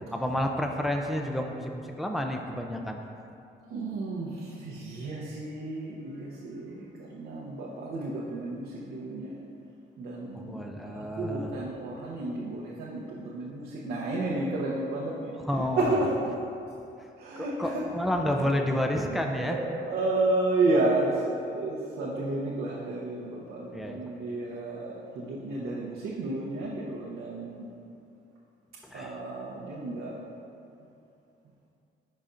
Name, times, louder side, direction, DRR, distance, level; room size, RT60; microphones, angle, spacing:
voice 1, 0.1-3.0 10.3-11.5 15.4-15.9 17.4-19.6 23.7-24.0 28.8-29.2, left 1 dB, ahead, 3 dB, 0.5 m, -30 dB
voice 2, 3.7-9.4 10.0-15.3 15.8-16.1 17.2-17.8 18.4-18.5 19.0-27.7 28.9-30.2, right 2 dB, 90° right, -5 dB, 0.9 m, -31 dB
12.0 x 4.2 x 2.6 m, 2.6 s
cardioid pair, 90°, 20 cm